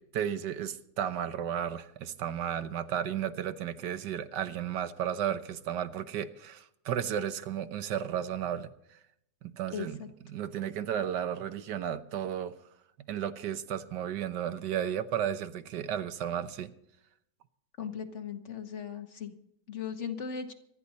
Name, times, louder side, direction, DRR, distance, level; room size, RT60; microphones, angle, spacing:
voice 1, 0.0-8.7 9.4-10.0 10.3-12.5 13.1-16.7, right 9 dB, 85° right, 11 dB, 1.5 m, -33 dB
voice 2, 9.7-10.1 17.8-19.3 19.7-20.5, left 7 dB, 45° left, 7 dB, 1.4 m, -38 dB
25.5 x 10.0 x 4.1 m, 0.75 s
omnidirectional pair, 1.8 m